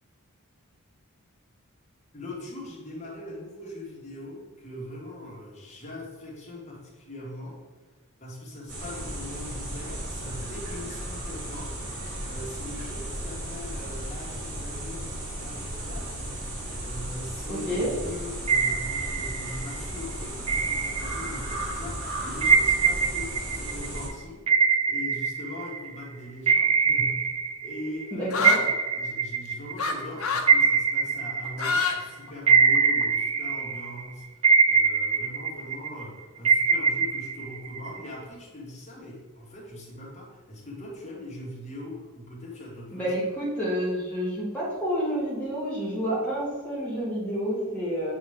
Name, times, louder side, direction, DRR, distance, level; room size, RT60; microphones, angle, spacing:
voice 1, 2.1-7.6 8.2-16.2 16.8-43.1, left 1 dB, 30° left, -4 dB, 1.8 m, -41 dB
sound 1, 8.7-24.1, right 1 dB, 80° right, 2.1 m, -35 dB
voice 2, 17.5-17.9 28.1-28.6 42.9-48.1, equal, 5° left, -8 dB, 1.3 m, -29 dB
sound 2, 18.5-19.8 20.5-21.6 22.4-26.0 26.5-28.1 28.4-32.0 32.5-34.0 34.4-36.0 36.4-38.1, right 5 dB, 25° right, 0.3 m, -23 dB
sound 3, 28.3-28.6 29.8-29.9 30.2-30.5 31.4-32.0 32.3-33.0, left 4 dB, 70° left, 0.8 m, -26 dB
7.9 x 3.1 x 4.9 m, 1.4 s
head